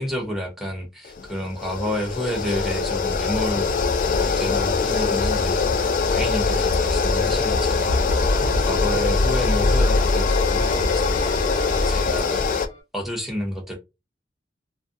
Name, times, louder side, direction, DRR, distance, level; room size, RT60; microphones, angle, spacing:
voice 1, 0.0-3.8 4.2-5.7 6.1-8.1 8.5-11.2 11.7-12.4 12.9-13.8, equal, ahead, 0.5 m, -30 dB
sound 1, 1.1-12.7, left 4 dB, 45° left, 0.4 m, -22 dB
sound 2, 9.1-12.8, equal, 25° left, 1.1 m, -40 dB
2.4 x 2.3 x 2.4 m
head